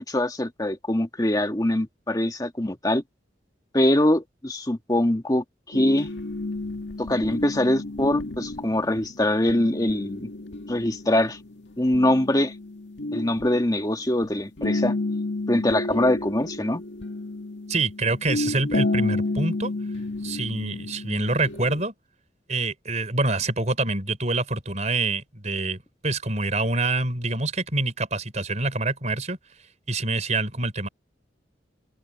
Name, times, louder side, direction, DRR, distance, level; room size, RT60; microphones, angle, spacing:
voice 1, 0.0-3.0 3.7-6.1 7.0-10.3 10.7-11.4 11.8-12.5 13.1-14.9 15.5-16.8, left 1 dB, 20° left, 1.5 m, -23 dB
sound 1, 5.7-14.2 14.6-21.8, left 2 dB, 80° left, 2.0 m, -31 dB
voice 2, 17.7-19.7 20.2-21.9 22.5-29.4 29.9-30.9, right 2 dB, 40° right, 4.7 m, -26 dB
open air
head